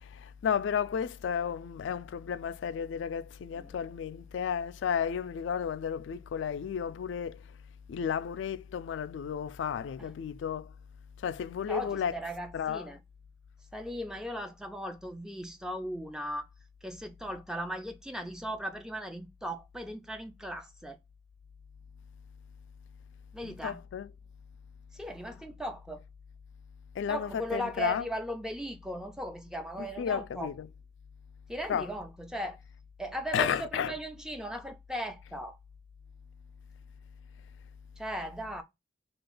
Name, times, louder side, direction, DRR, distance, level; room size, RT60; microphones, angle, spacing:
voice 1, 0.0-7.4 7.9-10.7 11.2-12.1 12.5-12.9 23.4-24.1 26.9-28.0 29.8-30.7 31.7-31.9 33.3-33.9, left 7 dB, 90° left, 0.3 m, -33 dB
voice 2, 11.7-13.0 13.7-16.5 16.8-21.0 23.3-23.8 24.9-26.0 27.1-30.5 31.5-32.6 33.0-35.6 38.0-38.6, equal, 5° right, 0.3 m, -38 dB
2.9 x 2.3 x 3.7 m
head